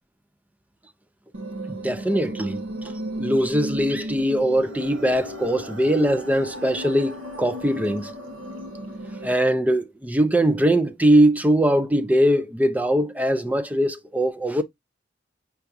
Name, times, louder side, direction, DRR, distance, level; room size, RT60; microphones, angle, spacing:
sound 1, 1.3-9.3, right 1 dB, 85° right, 1.2 m, -35 dB
voice 1, 1.7-2.9 3.2-8.1 9.2-14.6, right 1 dB, 10° right, 0.3 m, -21 dB
5.7 x 3.4 x 2.6 m
head